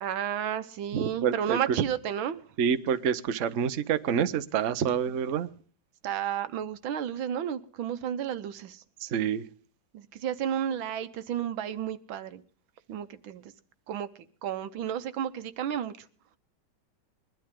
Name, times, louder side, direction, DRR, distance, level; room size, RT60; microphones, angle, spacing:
voice 1, 0.0-2.5 6.0-8.8 9.9-12.4 12.9-13.5 13.9-14.1 14.4-15.9, right 9 dB, 85° right, 1.7 m, -32 dB
voice 2, 0.9-1.8 2.6-5.5 9.0-9.4, right 7 dB, 55° right, 0.9 m, -27 dB
21.5 x 12.0 x 3.7 m
omnidirectional pair, 2.1 m